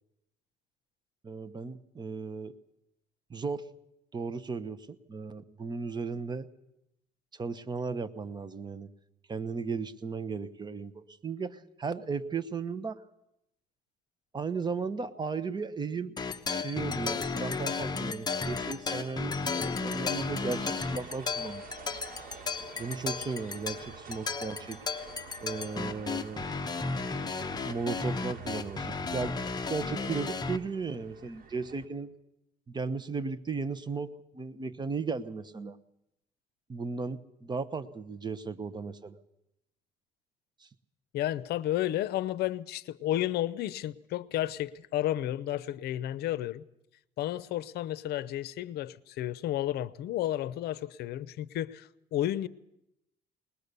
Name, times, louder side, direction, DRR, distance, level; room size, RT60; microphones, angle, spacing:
voice 1, 1.2-2.5 3.3-3.6 4.1-6.5 7.3-8.9 9.3-13.0 14.3-16.1 16.5-21.6 22.8-24.8 25.4-26.5 27.6-29.4 29.7-32.1 32.7-35.8 36.7-39.2 40.6-40.7, right 4 dB, 25° right, 0.9 m, -36 dB
sound 1, 16.2-30.6, left 4 dB, 25° left, 1.0 m, -34 dB
sound 2, 19.9-31.9, right 6 dB, 60° right, 2.4 m, -49 dB
voice 2, 41.1-46.6 47.2-52.5, left 13 dB, 70° left, 0.7 m, -32 dB
20.5 x 20.0 x 6.8 m
cardioid pair, 110°, 17 cm